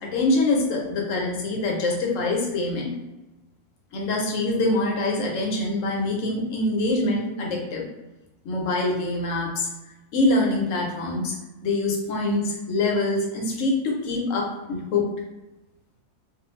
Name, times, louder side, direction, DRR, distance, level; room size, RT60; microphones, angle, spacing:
voice 1, 0.0-2.9 3.9-7.9 8.4-9.7 10.1-11.3 11.6-15.0, left 2 dB, 65° left, -1 dB, 0.9 m, -24 dB
2.6 x 2.3 x 3.1 m, 1.0 s
omnidirectional pair, 1.6 m